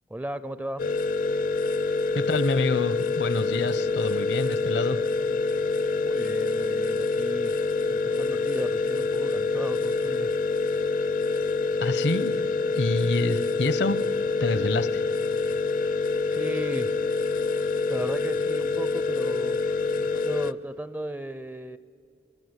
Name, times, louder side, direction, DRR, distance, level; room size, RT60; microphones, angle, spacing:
voice 1, 0.1-0.9 6.0-7.5 7.9-10.3 15.7-16.0 16.3-16.9 17.4-21.8, right 1 dB, 10° right, 15 dB, 0.5 m, -36 dB
sound 1, 0.8-20.5, left 4 dB, 45° left, 0.6 m, -26 dB
voice 2, 2.1-5.0 11.8-12.4 12.7-14.0 14.4-15.0, left 2 dB, 70° left, 16 dB, 0.9 m, -27 dB
24.5 x 24.0 x 8.1 m, 2.5 s
head